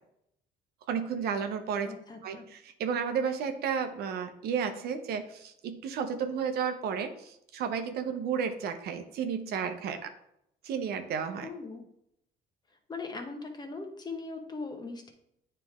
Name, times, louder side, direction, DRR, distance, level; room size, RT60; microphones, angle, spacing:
voice 1, 0.9-1.9 2.2-10.1 10.6-11.5, right 7 dB, 70° right, 7 dB, 0.8 m, -32 dB
voice 2, 1.8-2.5 11.4-11.9 12.9-15.1, left 3 dB, 25° left, 4 dB, 1.0 m, -40 dB
9.0 x 3.4 x 3.6 m, 0.75 s
cardioid pair, 110°, 17 cm